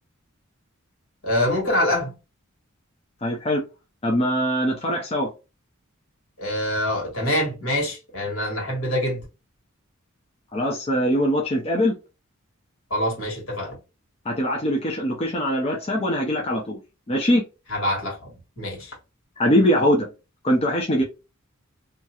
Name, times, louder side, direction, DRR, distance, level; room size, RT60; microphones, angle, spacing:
voice 1, 1.2-2.2 6.4-9.2 12.9-13.8 17.7-18.9, left 1 dB, 70° left, 1.8 m, -25 dB
voice 2, 3.2-3.6 4.0-5.3 10.5-12.0 14.3-16.8 17.1-17.4 19.4-20.1 20.4-21.0, equal, 30° left, 0.5 m, -22 dB
2.9 x 2.3 x 2.7 m
head